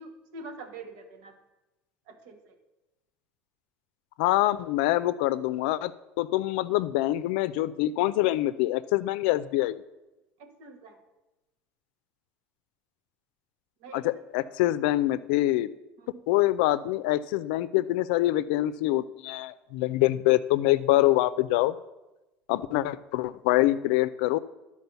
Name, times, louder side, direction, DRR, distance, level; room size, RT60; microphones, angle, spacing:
voice 1, 0.0-1.3 2.1-2.5 10.4-11.0 13.8-14.0 16.0-16.2, right 3 dB, 80° right, 4 dB, 1.6 m, -45 dB
voice 2, 4.2-5.9 6.2-9.8 13.9-15.7 16.3-21.7 22.5-24.4, left 16 dB, 85° left, 14 dB, 0.4 m, -25 dB
10.5 x 4.7 x 6.9 m, 1.0 s
supercardioid pair, 110°, 5 cm